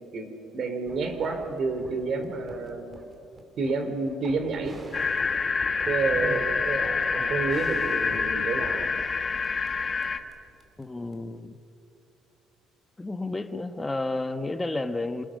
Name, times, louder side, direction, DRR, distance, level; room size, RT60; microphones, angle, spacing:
voice 1, 0.1-2.9 3.6-4.8 5.9-8.9, right 4 dB, 45° right, 7 dB, 3.7 m, -29 dB
sound 1, 0.9-11.4, right 1 dB, 20° right, 3.1 m, -45 dB
sound 2, 4.9-10.2, left 5 dB, 25° left, 1.4 m, -27 dB
voice 2, 10.8-11.6 13.0-15.2, left 2 dB, 10° left, 9 dB, 1.1 m, -31 dB
27.0 x 26.0 x 6.5 m, 2.7 s
cardioid pair, 145°, 0 cm